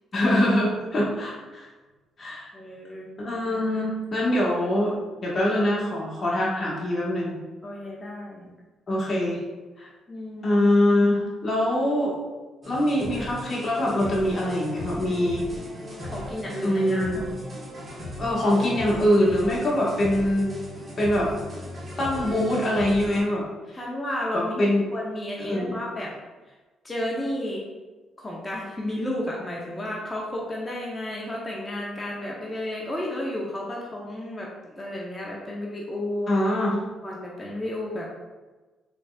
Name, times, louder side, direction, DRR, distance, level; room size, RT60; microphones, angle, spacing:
voice 1, 0.1-1.7 2.2-2.5 3.2-5.0 5.2-7.4 8.9-9.4 9.8-9.9 10.4-12.2 12.6-15.5 16.6-17.2 18.2-20.6 21.0-21.3 22.0-23.4 23.7-23.8 24.3-24.8 25.4-25.7 36.3-36.8, left 1 dB, 40° left, -5 dB, 1.4 m, -23 dB
voice 2, 2.5-3.1 7.6-8.4 10.1-10.6 16.1-17.3 23.7-26.2 26.8-27.6 28.2-34.5 34.8-36.5 37.0-38.1, left 1 dB, 20° left, -3 dB, 0.7 m, -32 dB
sound 1, 12.6-23.2, equal, 30° right, 1.4 m, -37 dB
4.0 x 3.3 x 2.3 m, 1.2 s
supercardioid pair, 65°, 0 cm